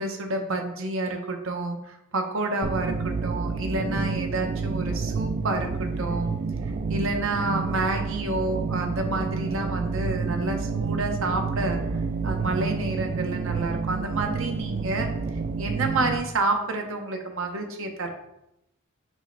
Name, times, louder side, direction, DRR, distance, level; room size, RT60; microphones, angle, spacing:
voice 1, 0.0-6.3 6.6-11.8 12.2-15.1 15.6-18.1, right 2 dB, 70° right, 4 dB, 0.7 m, -29 dB
sound 1, 2.6-16.2, right 4 dB, 40° right, 0.3 m, -29 dB
6.1 x 2.2 x 3.9 m, 0.85 s
head